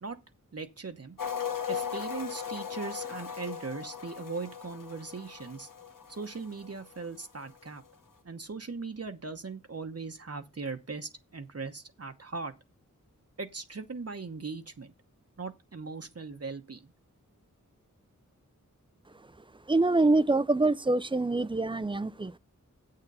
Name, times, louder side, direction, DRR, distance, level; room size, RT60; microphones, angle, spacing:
voice 1, 0.5-1.2 1.7-5.7 6.1-7.8 8.2-12.5 13.4-14.9 15.4-16.9, right 4 dB, 50° right, 1.0 m, -39 dB
sound 1, 1.2-7.2 7.5-7.7, left 7 dB, 90° left, 1.1 m, -38 dB
voice 2, 19.7-22.4, right 2 dB, 15° right, 0.4 m, -25 dB
8.2 x 6.7 x 5.4 m
wide cardioid pair, 60°, 32 cm